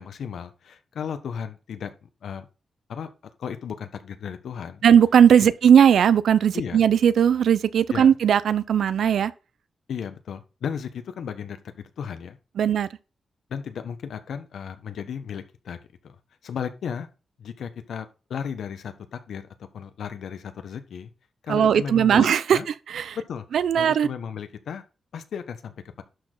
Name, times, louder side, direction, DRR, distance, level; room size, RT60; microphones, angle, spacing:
voice 1, 0.0-2.5 2.9-3.1 3.4-4.8 5.4-5.5 6.5-6.8 7.9-8.1 9.9-12.4 13.5-15.8 16.0-16.2 16.4-17.1 17.4-19.4 19.7-21.1 21.4-22.7 23.1-23.4 23.8-24.8 25.1-26.0, left 7 dB, 85° left, 1.2 m, -34 dB
voice 2, 4.8-9.3 12.6-12.9 21.5-22.6 22.9-23.2 23.5-24.1, right 8 dB, 90° right, 0.6 m, -18 dB
11.5 x 6.4 x 3.9 m
wide cardioid pair, 160°, 0 cm